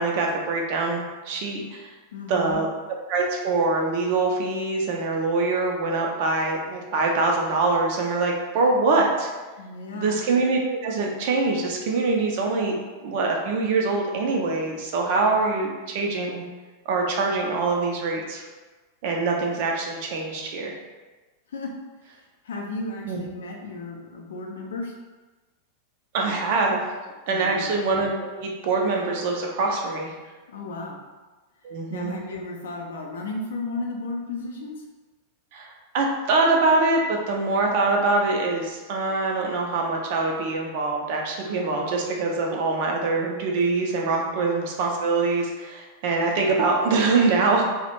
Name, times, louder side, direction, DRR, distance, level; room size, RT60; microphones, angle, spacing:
voice 1, 0.0-1.9 2.3-2.7 3.1-9.3 9.9-12.8 13.0-16.4 16.9-18.5 19.0-20.7 23.0-23.2 26.1-26.9 27.3-30.2 31.6-32.2 35.5-47.6, right 3 dB, 50° right, 0 dB, 0.4 m, -24 dB
voice 2, 2.1-2.6 9.6-10.2 21.5-21.7 22.4-24.9 27.3-27.7 30.5-31.0 31.9-34.8 44.3-44.4, left 2 dB, 65° left, 1 dB, 0.4 m, -34 dB
2.3 x 2.0 x 2.9 m, 1.2 s
figure-of-eight pair, 90°, 0 cm